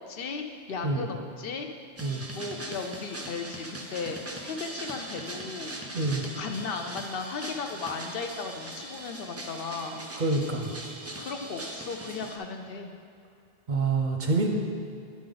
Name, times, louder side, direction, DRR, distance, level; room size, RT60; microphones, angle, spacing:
voice 1, 0.1-1.7 2.3-5.7 6.3-10.1 11.2-12.9, left 4 dB, 65° left, 5 dB, 0.7 m, -36 dB
sound 1, 2.0-12.4, right 1 dB, 25° right, 0.3 m, -40 dB
voice 2, 10.2-10.7 13.7-14.5, right 3 dB, 50° right, 2 dB, 0.7 m, -26 dB
10.0 x 5.2 x 3.8 m, 2.3 s
omnidirectional pair, 1.1 m